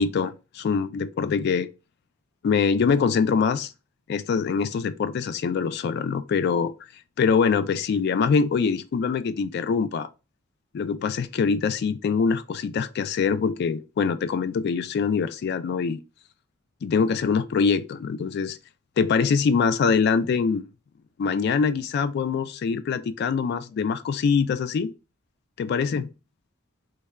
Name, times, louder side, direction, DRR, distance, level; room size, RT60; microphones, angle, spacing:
voice 1, 0.0-1.7 2.4-3.7 4.1-6.7 7.2-10.1 10.7-16.0 16.8-18.6 19.0-20.6 21.2-24.9 25.6-26.1, left 5 dB, 55° left, 0.3 m, -24 dB
3.2 x 2.2 x 3.5 m
head